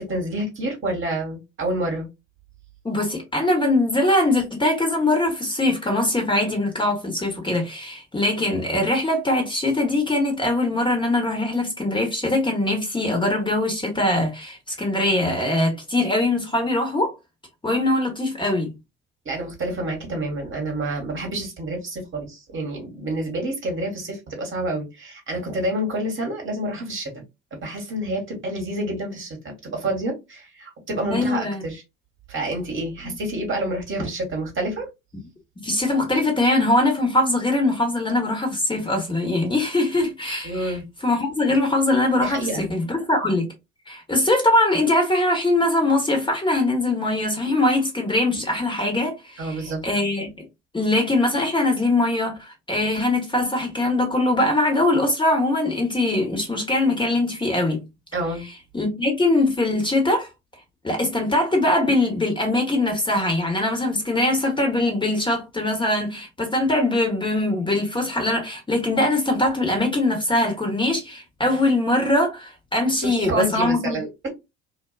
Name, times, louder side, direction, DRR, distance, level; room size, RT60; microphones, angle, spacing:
voice 1, 0.0-2.1 19.2-27.2 27.5-31.8 32.3-34.9 40.4-40.8 42.2-42.7 49.4-49.8 58.1-58.4 73.0-74.3, right 1 dB, 40° right, 1.1 m, -28 dB
voice 2, 2.8-17.1 17.6-18.7 31.1-31.6 35.6-40.8 41.0-43.4 43.9-50.4 50.7-57.8 58.7-60.3 60.8-74.0, left 2 dB, 15° left, 1.0 m, -22 dB
2.3 x 2.2 x 2.3 m
hypercardioid pair, 60°, 33 cm